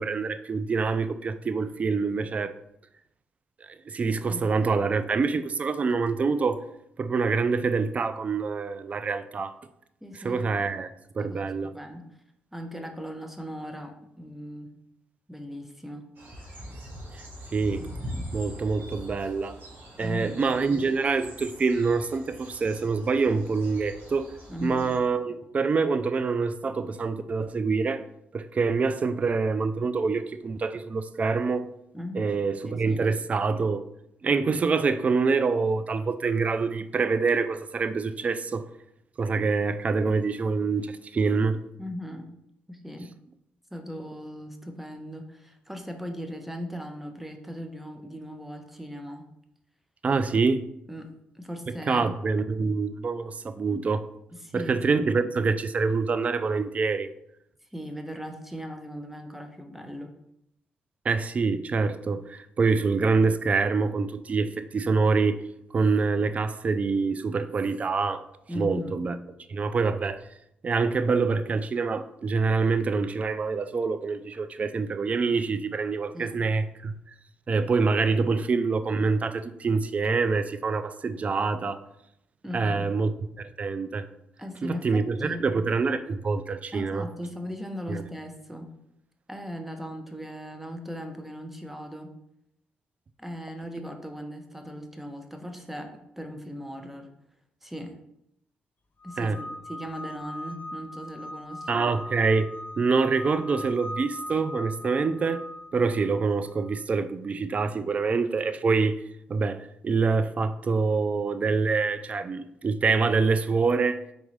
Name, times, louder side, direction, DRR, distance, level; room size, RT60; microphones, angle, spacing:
voice 1, 0.0-2.5 3.9-6.6 7.0-9.5 10.2-10.9 11.2-11.7 17.5-17.8 18.3-19.6 20.0-24.3 24.6-28.0 28.3-31.7 32.1-33.8 34.2-38.6 39.2-41.6 50.0-50.7 51.9-54.0 54.5-57.1 61.1-65.4 65.7-68.2 68.6-69.2 69.5-70.2 70.6-76.9 77.5-81.8 82.5-83.1 83.4-84.1 84.6-87.1 87.9-88.0 99.2-99.4 101.7-102.5 102.8-105.4 105.7-109.0 109.3-114.0, right 4 dB, 40° right, 11 dB, 0.3 m, -26 dB
voice 2, 10.0-10.5 11.2-12.1 12.5-14.8 15.3-16.1 20.0-20.4 24.5-24.9 31.9-32.4 32.6-33.0 41.8-42.4 42.7-43.1 43.7-49.3 50.9-52.2 54.3-55.2 57.7-60.2 68.5-69.0 76.1-76.4 82.4-82.9 84.4-85.4 86.7-88.7 89.3-92.1 93.2-97.1 97.6-98.0 99.0-101.7, equal, 5° right, 5 dB, 0.7 m, -38 dB
sound 1, 16.1-25.0, equal, 70° right, 1.2 m, -42 dB
sound 2, 99.0-106.8, left 1 dB, 55° left, 0.5 m, -40 dB
3.9 x 3.7 x 3.1 m, 0.79 s
cardioid pair, 70°, 4 cm